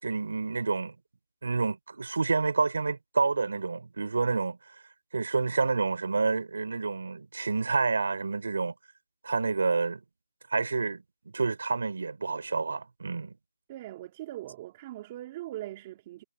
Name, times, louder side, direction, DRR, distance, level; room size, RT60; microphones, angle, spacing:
voice 1, 0.0-0.9 1.4-4.6 5.1-8.7 9.2-10.0 10.5-11.0 11.3-13.3, right 4 dB, 65° right, 6.4 m, -28 dB
voice 2, 13.7-16.2, right 15 dB, 20° right, 3.3 m, -41 dB
hypercardioid pair, 175°, 0 cm